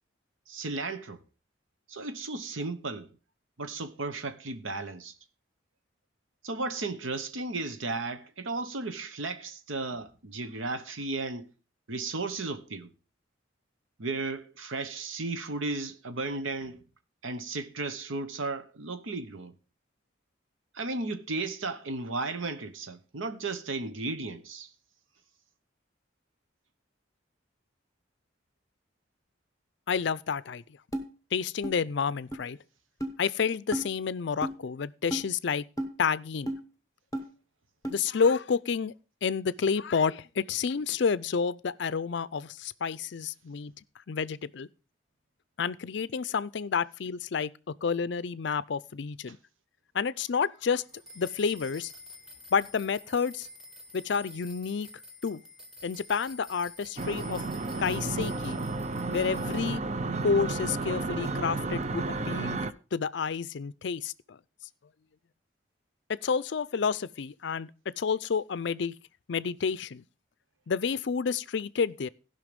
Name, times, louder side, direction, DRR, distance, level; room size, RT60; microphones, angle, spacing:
voice 1, 0.5-1.2 1.9-3.1 3.6-5.1 6.4-11.5 11.9-12.9 14.0-16.8 17.2-19.5 20.7-24.7, right 3 dB, 85° right, 1.0 m, -34 dB
voice 2, 29.9-30.6 31.3-32.6 33.2-35.6 36.0-36.5 37.9-38.9 39.2-43.7 44.1-44.7 45.6-49.4 49.9-50.8 51.2-51.9 52.5-53.5 53.9-54.9 55.2-55.4 55.8-57.4 57.8-58.6 59.1-59.8 60.2-64.4 66.1-67.7 68.0-68.9 69.3-70.0 70.7-72.1, left 6 dB, 60° left, 0.4 m, -29 dB
sound 1, 30.9-31.1 31.6-31.7 32.3-32.4 33.0-33.1 33.7-33.9 34.4-34.6 35.1-35.3 35.8-35.9 36.5-36.6 37.1-37.2 37.8-37.9, right 1 dB, 15° left, 1.0 m, -32 dB
sound 2, 50.9-59.6, left 2 dB, 5° right, 1.6 m, -49 dB
sound 3, 57.0-62.7, right 3 dB, 35° right, 0.5 m, -32 dB
15.5 x 5.7 x 5.2 m
head